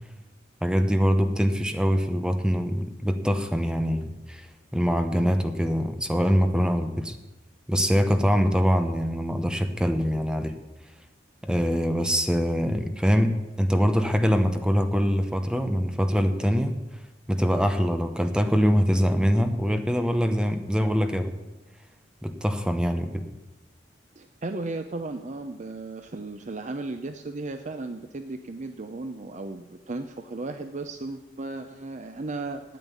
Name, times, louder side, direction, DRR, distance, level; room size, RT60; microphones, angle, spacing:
voice 1, 0.6-4.5 4.7-7.1 7.7-10.5 11.4-16.7 17.3-21.3 22.2-23.2, equal, 5° right, 7 dB, 0.9 m, -23 dB
voice 2, 24.2-32.6, right 2 dB, 40° right, 8 dB, 0.6 m, -35 dB
9.2 x 9.0 x 9.5 m, 1.0 s
head